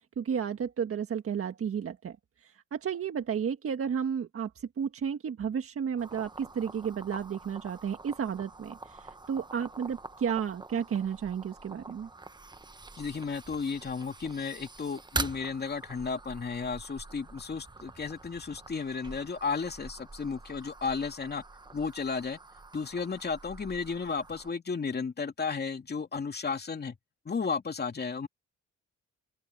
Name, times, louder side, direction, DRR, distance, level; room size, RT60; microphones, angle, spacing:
voice 1, 0.2-2.2 2.4-12.1, right 7 dB, 50° right, 1.6 m, -32 dB
sound 1, 6.0-24.5, right 3 dB, 15° right, 1.1 m, -44 dB
voice 2, 13.0-21.4 21.7-22.4 22.7-27.0 27.2-28.3, left 5 dB, 35° left, 2.7 m, -33 dB
open air
cardioid pair, 90°, 30 cm